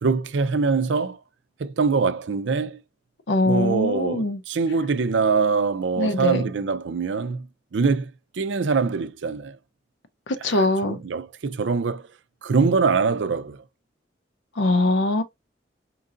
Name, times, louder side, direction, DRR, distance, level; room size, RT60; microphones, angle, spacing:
voice 1, 0.0-1.2 1.6-2.8 3.4-9.6 10.4-12.1 12.4-13.6, right 4 dB, 85° right, 0.5 m, -24 dB
voice 2, 3.3-4.4 6.0-6.4 10.3-11.0 14.6-15.2, left 2 dB, 85° left, 0.7 m, -22 dB
4.6 x 3.7 x 2.5 m
head